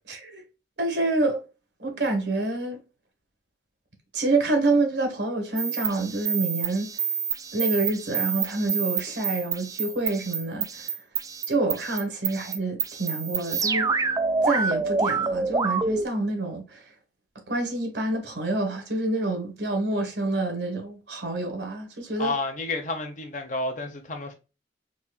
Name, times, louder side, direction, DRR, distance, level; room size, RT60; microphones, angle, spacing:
voice 1, 0.1-0.4 0.8-1.4 1.8-2.8 4.1-6.9 7.5-10.9 11.5-13.9 14.4-16.8 17.5-22.3, right 2 dB, 75° right, 1.5 m, -27 dB
sound 1, 5.6-16.1, right 5 dB, 20° right, 0.3 m, -28 dB
voice 2, 22.2-24.3, left 3 dB, 45° left, 0.8 m, -30 dB
4.2 x 3.0 x 2.3 m
head